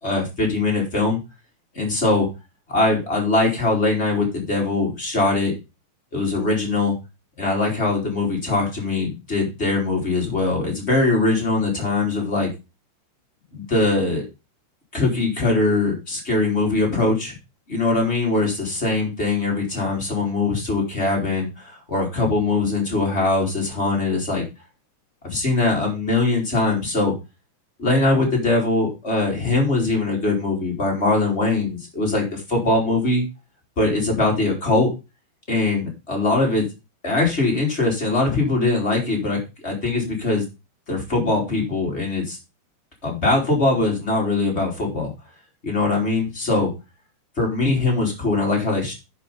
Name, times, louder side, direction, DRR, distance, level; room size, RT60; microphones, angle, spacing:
voice 1, 0.0-1.2 1.8-2.3 2.7-5.5 6.1-6.9 7.4-12.5 13.5-14.3 14.9-17.4 17.7-24.4 25.3-27.1 27.8-33.2 33.8-34.9 35.5-36.6 37.0-40.4 40.9-42.4 43.0-45.1 45.6-46.7 47.4-48.9, left 2 dB, 20° left, -1 dB, 3.4 m, -21 dB
10.5 x 5.6 x 5.1 m, 0.27 s
omnidirectional pair, 3.6 m